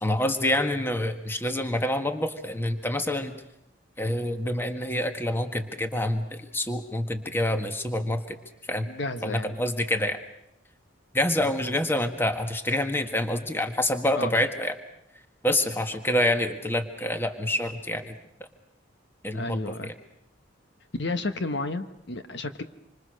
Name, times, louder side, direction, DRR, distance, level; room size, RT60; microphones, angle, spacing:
voice 1, 0.0-3.4 4.0-8.4 8.7-8.9 9.2-10.2 11.1-14.7 15.4-18.1 19.2-19.9, left 1 dB, 10° left, 7 dB, 1.7 m, -27 dB
voice 2, 8.8-9.5 11.4-11.5 14.1-14.3 19.3-19.9 21.0-22.6, left 2 dB, 60° left, 9 dB, 1.3 m, -32 dB
27.0 x 25.5 x 6.6 m, 0.82 s
head